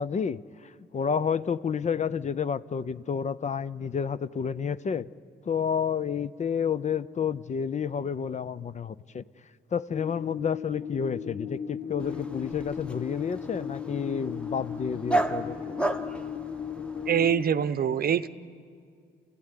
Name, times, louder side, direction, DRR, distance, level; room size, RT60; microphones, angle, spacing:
voice 1, 0.0-5.1 5.5-9.2 9.7-15.8, left 7 dB, 35° left, 16 dB, 0.6 m, -30 dB
sound 1, 9.9-17.4, left 7 dB, 55° left, 1.4 m, -36 dB
Dog, 12.0-17.3, right 2 dB, 5° left, 1.4 m, -34 dB
voice 2, 17.1-18.3, right 8 dB, 50° right, 14 dB, 0.8 m, -24 dB
28.0 x 15.5 x 9.7 m, 2.2 s
cardioid pair, 90°, 20 cm